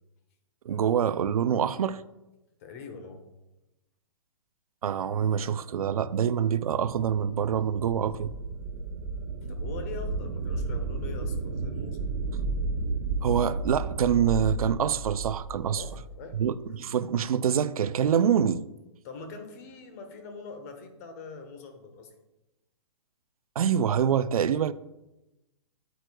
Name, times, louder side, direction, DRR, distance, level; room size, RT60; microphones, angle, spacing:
voice 1, 0.6-2.0 4.8-8.3 13.2-15.8 16.3-18.6 23.6-24.7, right 8 dB, 90° right, 0.5 m, -25 dB
voice 2, 2.6-3.3 9.5-12.0 15.7-16.4 19.0-22.1, left 4 dB, 25° left, 0.9 m, -43 dB
sound 1, 6.6-16.4, right 3 dB, 40° right, 0.9 m, -33 dB
9.2 x 9.1 x 2.3 m
hypercardioid pair, 165°, 18 cm